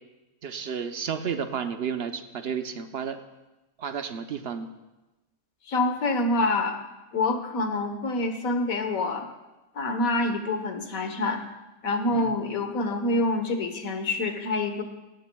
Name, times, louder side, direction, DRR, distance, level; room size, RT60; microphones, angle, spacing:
voice 1, 0.4-3.2 3.8-4.7 12.1-12.4, right 7 dB, 50° right, 8 dB, 0.9 m, -32 dB
voice 2, 5.7-6.8 7.1-9.3 9.7-11.4 11.8-14.8, left 2 dB, 70° left, 6 dB, 1.6 m, -26 dB
17.0 x 17.0 x 2.3 m, 1.0 s
omnidirectional pair, 1.5 m